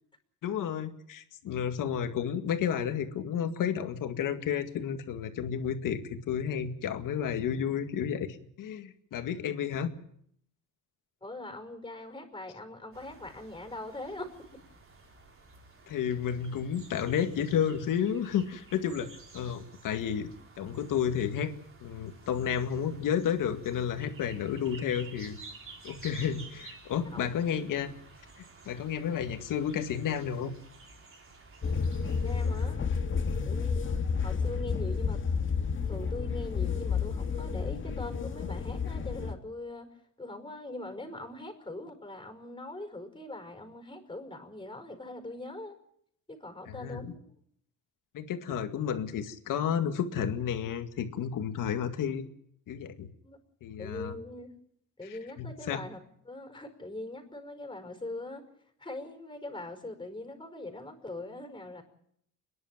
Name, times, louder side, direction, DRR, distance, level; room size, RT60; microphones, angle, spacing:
voice 1, 0.4-8.3 8.6-9.9 15.9-20.3 20.6-21.5 21.8-25.4 25.8-27.9 28.4-30.5 46.7-47.1 48.1-52.2 52.7-53.1 53.6-54.1 55.0-55.8, left 8 dB, 80° left, 7 dB, 2.1 m, -31 dB
voice 2, 11.2-14.3 27.1-27.3 32.2-32.8 33.4-33.8 34.2-35.2 35.9-39.9 40.2-45.8 46.3-47.2 53.2-53.4 53.8-54.5 55.0-56.0 56.2-58.4 58.8-61.8, left 2 dB, 15° left, 6 dB, 5.2 m, -42 dB
sound 1, 12.9-32.7, right 3 dB, 40° right, 4.3 m, -52 dB
sound 2, 31.6-39.3, left 5 dB, 40° left, 1.9 m, -31 dB
30.0 x 11.0 x 9.1 m, 0.71 s
cardioid pair, 105°, 32 cm